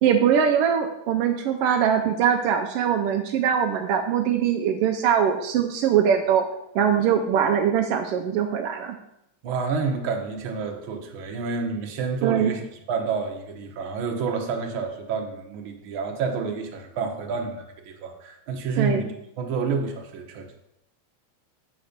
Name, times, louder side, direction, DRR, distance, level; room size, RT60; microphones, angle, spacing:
voice 1, 0.0-6.4 6.7-8.9 12.2-12.5 18.8-19.0, right 8 dB, 80° right, 4 dB, 1.3 m, -22 dB
voice 2, 9.4-20.6, right 5 dB, 55° right, 2 dB, 1.5 m, -29 dB
7.9 x 4.2 x 6.5 m, 0.81 s
omnidirectional pair, 3.3 m